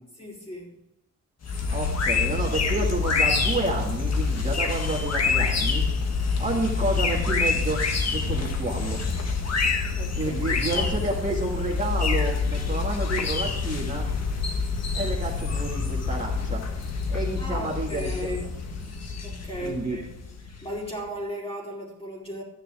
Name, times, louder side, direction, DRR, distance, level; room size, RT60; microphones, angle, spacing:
voice 1, 0.2-0.8 6.5-6.6 10.0-10.9 17.4-18.5 19.2-20.1 20.4-22.4, equal, 20° left, -3 dB, 3.4 m, -36 dB
sound 1, 1.4-20.9, left 4 dB, 60° left, 1.6 m, -27 dB
voice 2, 1.7-5.8 6.4-7.8 8.1-9.0 10.2-14.1 14.9-16.6 17.1-18.3 19.6-20.0, right 2 dB, 25° right, -3 dB, 2.0 m, -30 dB
12.5 x 10.0 x 3.6 m, 0.87 s
wide cardioid pair, 175°, 29 cm